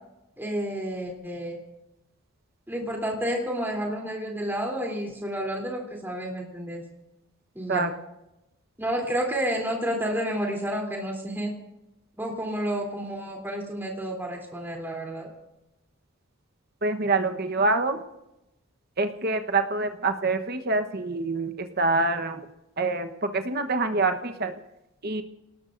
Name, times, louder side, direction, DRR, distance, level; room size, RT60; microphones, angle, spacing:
voice 1, 0.4-1.6 2.7-6.8 7.5-7.9 8.8-11.5 12.2-15.3, equal, 10° right, 0 dB, 3.3 m, -30 dB
voice 2, 16.8-18.0 19.0-22.4 22.8-24.5 25.0-25.2, right 3 dB, 45° right, 7 dB, 1.1 m, -26 dB
27.0 x 19.0 x 2.6 m, 0.93 s
head